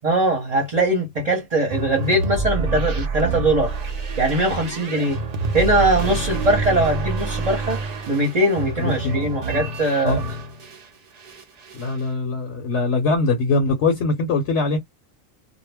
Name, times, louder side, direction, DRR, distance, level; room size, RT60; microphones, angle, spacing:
voice 1, 0.0-3.7 4.2-5.2 5.5-7.8 8.1-10.2, right 1 dB, 35° right, 0.8 m, -21 dB
sound 1, 1.7-10.9 11.2-12.0, right 3 dB, 65° right, 0.4 m, -27 dB
voice 2, 8.8-9.2 10.0-10.2 11.7-14.8, left 3 dB, 65° left, 0.9 m, -22 dB
2.3 x 2.0 x 3.3 m
omnidirectional pair, 1.4 m